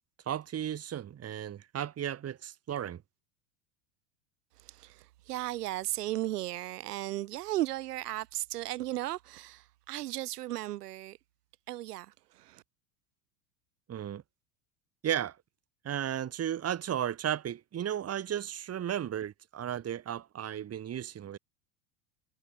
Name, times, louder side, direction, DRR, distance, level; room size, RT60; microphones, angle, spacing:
voice 1, 0.3-3.0 13.9-14.2 15.0-15.4 15.8-21.4, right 10 dB, 30° right, 2.9 m, -34 dB
voice 2, 4.6-11.2 11.7-12.6, right 15 dB, 75° right, 3.3 m, -36 dB
hypercardioid pair, 95°, 46 cm